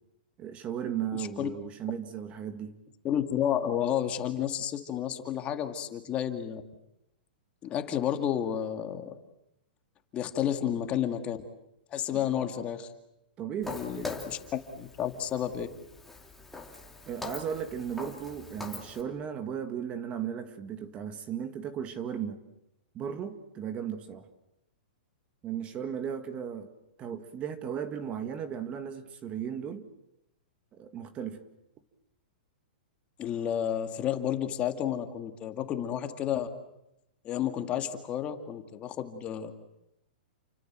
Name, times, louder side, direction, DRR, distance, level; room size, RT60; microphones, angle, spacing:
voice 1, 0.4-2.8 12.1-12.3 13.4-14.1 17.1-22.4 22.9-24.3 25.4-26.7 27.0-29.9 30.7-31.4, right 8 dB, 25° right, 1.8 m, -36 dB
voice 2, 1.2-1.5 3.0-6.6 7.6-9.1 10.1-11.4 11.9-12.9 13.7-15.7 33.2-36.5 37.2-39.5, left 10 dB, 25° left, 2.1 m, -31 dB
Walk footsteps, 13.6-19.0, left 3 dB, 5° left, 2.6 m, -43 dB
29.5 x 24.5 x 7.6 m
hypercardioid pair, 155°, 5 cm